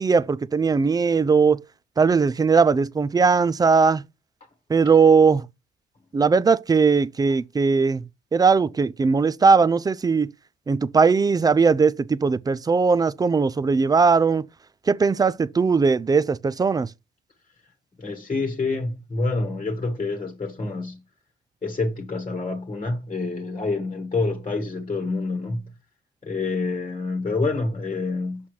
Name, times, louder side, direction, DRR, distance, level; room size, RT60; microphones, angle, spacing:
voice 1, 0.0-1.6 2.0-4.0 4.7-5.5 6.1-8.0 8.3-10.3 10.7-14.5 14.9-16.9, right 5 dB, 20° right, 0.3 m, -19 dB
voice 2, 18.0-21.0 21.6-25.6 26.2-28.4, left 3 dB, 30° left, 1.3 m, -27 dB
5.9 x 5.6 x 3.1 m
cardioid pair, 90°, 20 cm